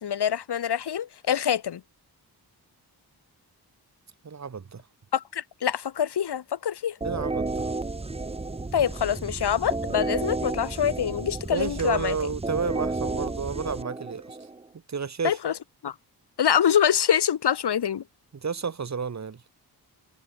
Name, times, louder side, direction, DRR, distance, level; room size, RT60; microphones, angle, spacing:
voice 1, 0.0-1.8 5.1-7.0 8.7-12.2 15.2-15.5 15.8-15.9 16.4-18.0, left 9 dB, 80° left, 3.7 m, -25 dB
voice 2, 4.2-4.8 7.0-7.7 11.5-14.4 14.9-15.4 18.3-19.4, right 6 dB, 45° right, 4.3 m, -31 dB
sound 1, 7.0-14.7, right 3 dB, 15° right, 1.3 m, -32 dB
wide cardioid pair, 165°, 40 cm